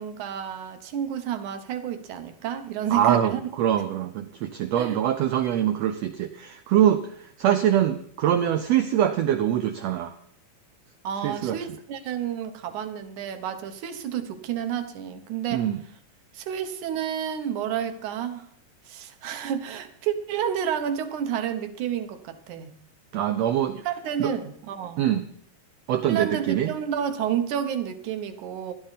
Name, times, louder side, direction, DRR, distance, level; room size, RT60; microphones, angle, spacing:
voice 1, 0.0-3.5 4.8-5.0 11.0-15.7 16.3-18.5 18.9-22.7 23.9-25.0 26.1-28.7, right 9 dB, 70° right, 9 dB, 2.4 m, -30 dB
voice 2, 2.9-10.1 11.2-11.6 15.5-15.8 23.1-23.9 24.2-24.3 25.0-25.3 25.9-26.7, right 10 dB, 85° right, 9 dB, 1.4 m, -24 dB
16.0 x 12.0 x 4.1 m, 0.66 s
omnidirectional pair, 3.8 m